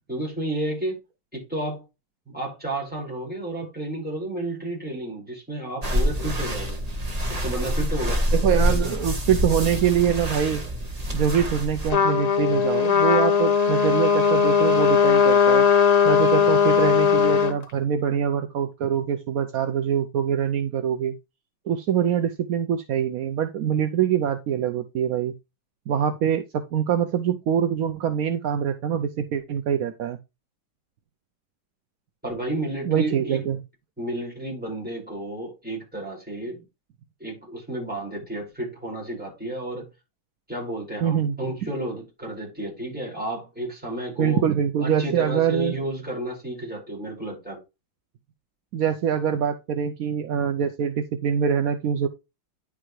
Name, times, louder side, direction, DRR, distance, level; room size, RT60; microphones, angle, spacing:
voice 1, 0.1-1.0 1.3-1.8 2.2-6.8 7.3-8.3 8.7-8.9 32.2-33.4 34.0-36.6 37.2-39.9 40.5-44.4 44.8-47.6, right 1 dB, 5° right, 5.1 m, -31 dB
sound 1, 5.8-11.9, equal, 25° right, 1.2 m, -26 dB
voice 2, 8.3-10.6 11.1-15.7 16.0-21.1 21.7-25.3 25.9-30.2 32.9-33.6 41.0-41.4 44.2-45.8 48.7-52.1, right 8 dB, 70° right, 0.8 m, -24 dB
Trumpet, 11.9-17.5, left 7 dB, 75° left, 0.3 m, -19 dB
9.9 x 5.6 x 3.1 m
omnidirectional pair, 2.2 m